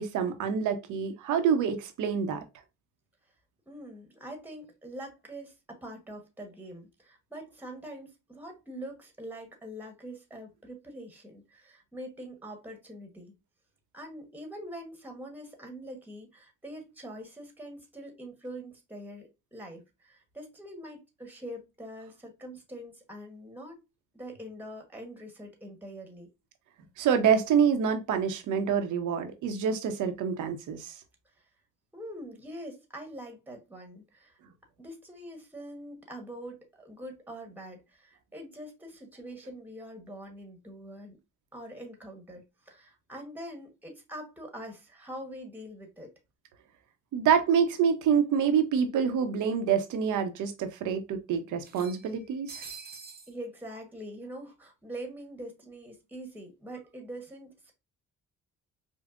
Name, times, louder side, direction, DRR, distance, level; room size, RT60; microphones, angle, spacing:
voice 1, 0.0-2.4 27.0-30.9 47.1-52.6, right 7 dB, 80° right, 0.8 m, -26 dB
voice 2, 3.7-13.3 13.9-23.8 24.1-26.3 31.9-34.4 34.8-41.2 41.5-46.1 53.3-57.7, right 1 dB, 5° right, 1.1 m, -44 dB
sound 1, 48.2-48.3 48.6-48.7 49.8-49.9 50.2-50.3 51.6-53.3, right 5 dB, 30° right, 0.8 m, -46 dB
5.2 x 2.1 x 2.4 m
cardioid pair, 90°, 30 cm